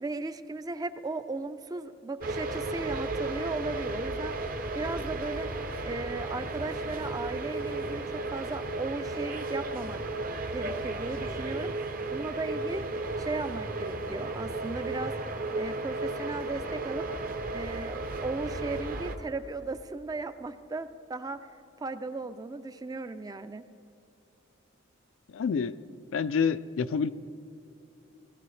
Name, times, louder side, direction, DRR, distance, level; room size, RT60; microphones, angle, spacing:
voice 1, 0.0-4.3 4.7-5.5 5.8-10.0 10.5-11.7 12.1-12.9 13.2-15.1 15.6-17.0 17.5-21.4 21.8-23.7, right 3 dB, 20° right, 11 dB, 0.4 m, -36 dB
sound 1, 2.2-19.2, right 2 dB, 45° right, 0.7 m, -34 dB
voice 2, 25.3-25.7 26.1-27.1, left 6 dB, 70° left, 14 dB, 0.4 m, -27 dB
18.0 x 14.0 x 3.2 m, 2.8 s
head